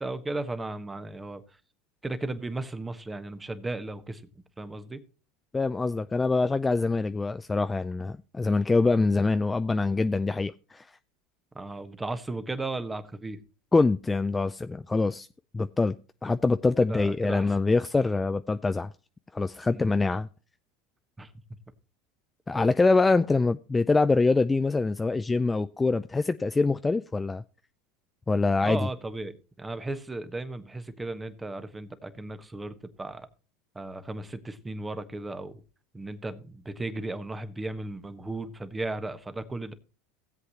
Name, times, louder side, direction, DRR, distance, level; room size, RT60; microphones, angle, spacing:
voice 1, 0.0-1.4 2.0-4.2 4.6-5.0 8.4-8.5 11.5-13.4 16.9-17.5 19.7-19.9 21.2-21.3 28.6-33.3 33.7-35.6 35.9-39.7, right 2 dB, 15° right, 1.4 m, -35 dB
voice 2, 5.5-10.8 13.7-15.3 15.5-16.0 16.2-18.9 19.3-20.3 22.5-27.4 28.3-28.9, left 3 dB, 15° left, 0.4 m, -24 dB
17.0 x 7.9 x 2.9 m
hypercardioid pair, 85°, 0 cm